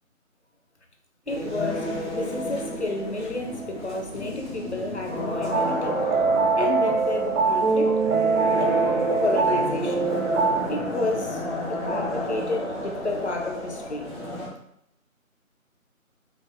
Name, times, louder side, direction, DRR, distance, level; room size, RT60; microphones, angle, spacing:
voice 1, 1.3-6.0 6.6-7.9 8.6-8.9 9.2-10.2 10.5-14.1, left 2 dB, 55° left, 2 dB, 0.5 m, -31 dB
sound 1, 1.3-14.5, left 1 dB, ahead, 0.5 m, -31 dB
sound 2, 5.5-10.6, right 4 dB, 85° right, 0.6 m, -23 dB
2.4 x 2.0 x 3.4 m, 0.76 s
figure-of-eight pair, 170°, 42 cm